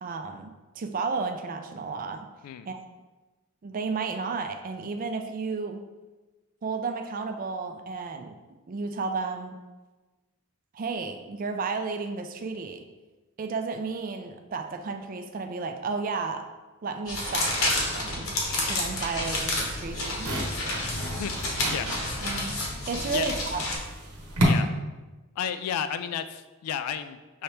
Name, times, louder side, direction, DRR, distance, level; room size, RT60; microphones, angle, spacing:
voice 1, 0.0-2.3 2.7-2.8 3.6-5.8 6.6-8.3 8.7-9.6 10.7-12.8 13.4-16.5 16.8-18.3 18.6-20.3 21.8-21.9 22.2-22.5 22.9-23.6, right 4 dB, 40° right, 6 dB, 0.3 m, -32 dB
sound 1, 17.0-23.8, left 2 dB, 65° left, 0.9 m, -30 dB
sound 2, 19.2-24.4, right 1 dB, 90° right, 1.1 m, -33 dB
voice 2, 25.4-27.4, left 8 dB, 90° left, 12 dB, 0.3 m, -32 dB
5.6 x 2.8 x 3.3 m, 1.2 s
head